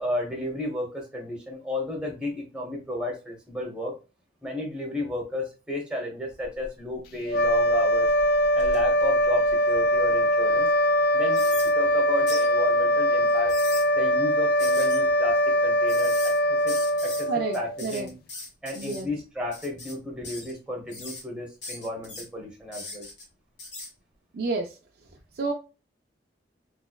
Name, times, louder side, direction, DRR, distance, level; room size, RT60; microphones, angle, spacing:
voice 1, 0.0-3.9 4.4-8.1 8.5-10.7 11.1-11.4 11.7-13.5 13.9-16.7 17.0-17.3 17.5-18.2 18.6-23.1, left 1 dB, 5° right, 1.0 m, -33 dB
sound 1, 6.4-6.9 7.4-10.0 10.5-10.6 11.3-11.7 12.3-12.5 13.3-13.8 14.6-15.0 15.9-16.4 16.7-17.2 17.5-19.0 19.5-19.9 20.2-20.6 20.9-21.2 21.6-22.2 22.7-23.2 23.6-23.9, left 2 dB, 85° left, 1.6 m, -39 dB
sound 2, 7.3-17.9, equal, 55° left, 0.3 m, -22 dB
voice 2, 17.3-18.1 18.8-19.1 24.3-24.7 25.4-25.5, right 3 dB, 60° right, 0.4 m, -29 dB
3.3 x 3.0 x 2.3 m
head